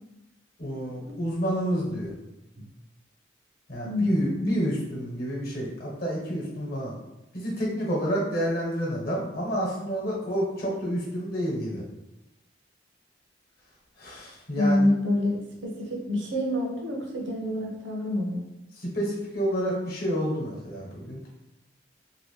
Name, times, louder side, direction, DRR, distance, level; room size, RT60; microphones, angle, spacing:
voice 1, 0.6-2.1 3.7-7.0 7.3-11.8 14.0-14.9 18.8-21.3, equal, 50° left, -3 dB, 1.0 m, -29 dB
voice 2, 3.8-4.6 14.5-18.4, left 1 dB, 70° right, -1 dB, 0.7 m, -27 dB
2.9 x 2.5 x 3.1 m, 0.94 s
head